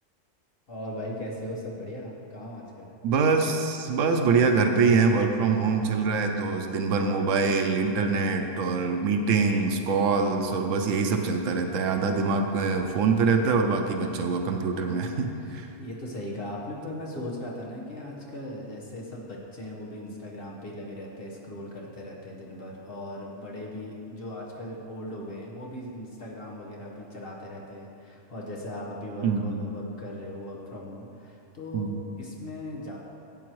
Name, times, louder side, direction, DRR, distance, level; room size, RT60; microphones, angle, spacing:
voice 1, 0.7-2.9 15.4-33.0, left 1 dB, 50° left, -3 dB, 1.5 m, -38 dB
voice 2, 3.0-15.7 29.2-29.6 31.7-32.0, right 4 dB, 85° right, 4 dB, 1.0 m, -24 dB
12.5 x 8.5 x 3.1 m, 2.6 s
omnidirectional pair, 1.3 m